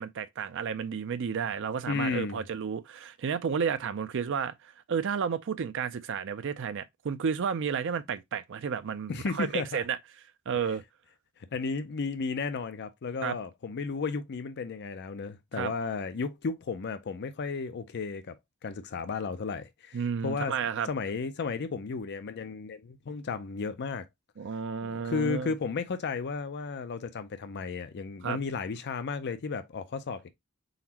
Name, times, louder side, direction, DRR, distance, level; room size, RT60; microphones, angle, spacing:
voice 1, 0.0-10.0 10.5-10.8 13.2-13.4 15.6-15.7 19.9-20.9 24.4-25.5 28.2-28.4, right 6 dB, 60° right, 0.4 m, -32 dB
voice 2, 1.9-2.4 9.1-9.8 11.5-18.3 18.6-20.5 20.8-24.0 24.8-30.3, left 4 dB, 50° left, 0.5 m, -34 dB
4.2 x 4.0 x 2.8 m
head